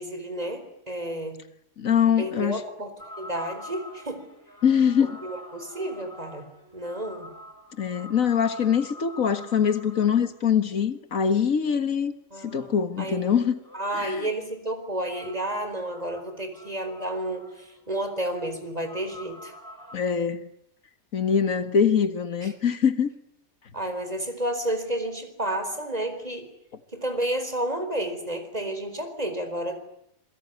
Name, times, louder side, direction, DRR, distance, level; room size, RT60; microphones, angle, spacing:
voice 1, 0.0-1.4 2.2-4.3 5.0-7.3 12.3-13.3 13.7-19.5 22.4-22.5 23.7-26.5 26.9-29.8, right 1 dB, 30° right, 4.4 m, -31 dB
voice 2, 1.8-2.6 4.6-5.2 7.8-12.1 12.4-13.6 13.9-14.3 19.9-20.4 21.1-23.1, left 7 dB, 75° left, 1.9 m, -23 dB
sound 1, 3.0-10.4 13.2-14.2 15.1-20.0, left 1 dB, 15° left, 7.1 m, -47 dB
27.0 x 22.5 x 9.5 m
omnidirectional pair, 1.5 m